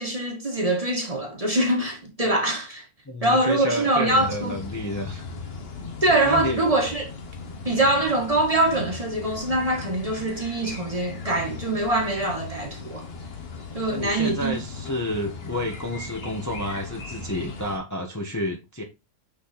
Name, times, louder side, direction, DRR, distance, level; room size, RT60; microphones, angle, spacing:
voice 1, 0.0-2.8 3.2-4.5 6.0-7.1 7.6-13.0 13.7-14.5, right 2 dB, 25° right, 1.5 m, -23 dB
voice 2, 3.1-5.2 6.1-6.6 13.9-18.8, left 1 dB, 15° left, 0.9 m, -30 dB
sound 1, 4.1-17.8, left 4 dB, 45° left, 1.2 m, -38 dB
5.8 x 4.2 x 4.1 m
omnidirectional pair, 1.5 m